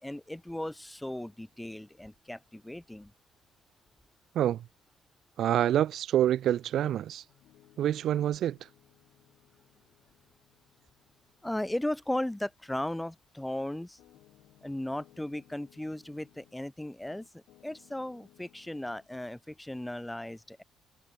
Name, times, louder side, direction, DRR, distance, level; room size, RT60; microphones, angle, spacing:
voice 1, 0.0-3.1 11.4-14.0 14.6-20.6, left 1 dB, 5° left, 1.1 m, -36 dB
voice 2, 5.4-7.2 7.8-8.7, right 11 dB, 60° right, 0.7 m, -27 dB
Piano, 7.3-16.6 17.1-19.1, left 15 dB, 85° left, 6.9 m, -63 dB
cardioid pair, 140°, 0 cm